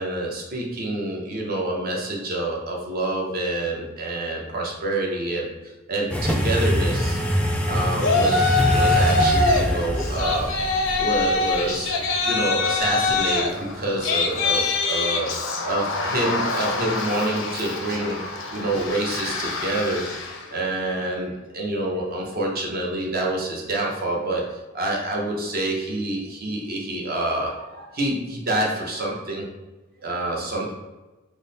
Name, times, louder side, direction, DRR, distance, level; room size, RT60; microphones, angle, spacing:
voice 1, 0.0-5.5 5.9-7.2 7.7-10.5 10.9-15.3 15.6-20.0 20.5-29.4 30.0-30.7, right 1 dB, 50° right, -1 dB, 0.7 m, -27 dB
sound 1, 6.1-14.6, equal, 5° left, 0.4 m, -25 dB
Yell, 8.0-9.7 10.0-20.4, left 3 dB, 80° left, 0.6 m, -24 dB
3.7 x 2.0 x 3.9 m, 1.1 s
head